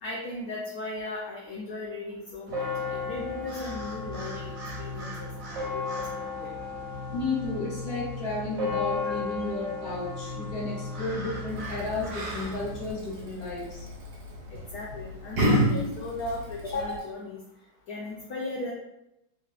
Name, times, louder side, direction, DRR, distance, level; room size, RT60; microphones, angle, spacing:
voice 1, 0.0-5.8 6.4-6.5 9.1-9.2 14.5-17.4 17.9-18.7, left 2 dB, 75° left, -3 dB, 0.8 m, -36 dB
sound 1, 2.5-12.9, left 3 dB, 55° right, 1.1 m, -35 dB
voice 2, 7.1-13.9, left 3 dB, 30° left, -5 dB, 0.9 m, -33 dB
Yell, 11.5-17.0, equal, 75° right, 1.5 m, -31 dB
3.2 x 2.9 x 2.4 m, 0.86 s
omnidirectional pair, 2.1 m